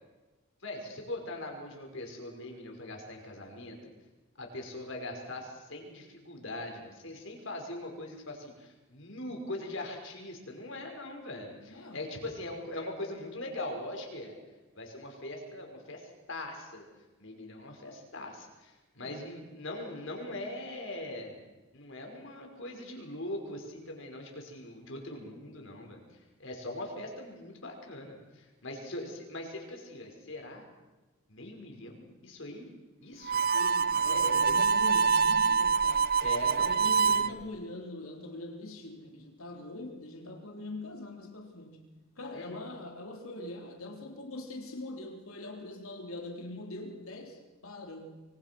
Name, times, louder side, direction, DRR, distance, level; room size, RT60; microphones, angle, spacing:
voice 1, 0.6-3.9 4.4-14.3 14.8-16.9 17.2-21.4 21.7-26.0 26.4-30.6 31.3-32.7 33.0-33.4 33.9-34.6 36.2-37.4 42.3-42.6, left 1 dB, 60° left, 2 dB, 5.9 m, -41 dB
voice 2, 11.7-12.4 19.0-19.3 33.5-36.1 36.4-41.9 42.2-48.2, left 2 dB, 85° left, 2 dB, 3.9 m, -43 dB
Harmonica, 33.2-37.3, right 5 dB, 45° right, 0.7 m, -25 dB
25.0 x 25.0 x 6.3 m, 1.2 s
head